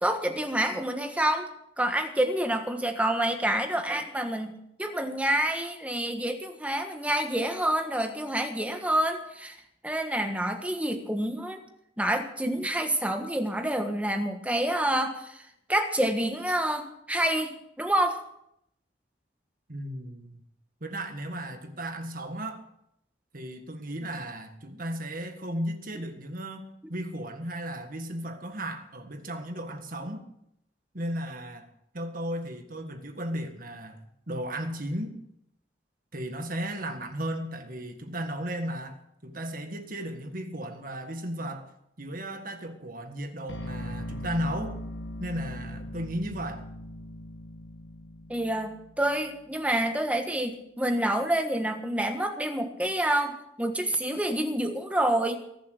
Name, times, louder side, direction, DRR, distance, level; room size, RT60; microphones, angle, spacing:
voice 1, 0.0-1.5 1.8-9.6 9.8-11.6 12.0-18.2 48.3-55.4, right 1 dB, 10° right, 1.4 m, -28 dB
voice 2, 19.7-20.4 20.8-22.6 23.3-30.3 30.9-31.7 31.9-35.2 36.1-41.7 42.0-44.8 45.2-46.7, right 1 dB, 50° right, 1.8 m, -35 dB
sound 1, 43.5-49.5, equal, 85° left, 1.4 m, -40 dB
22.5 x 7.7 x 6.6 m
head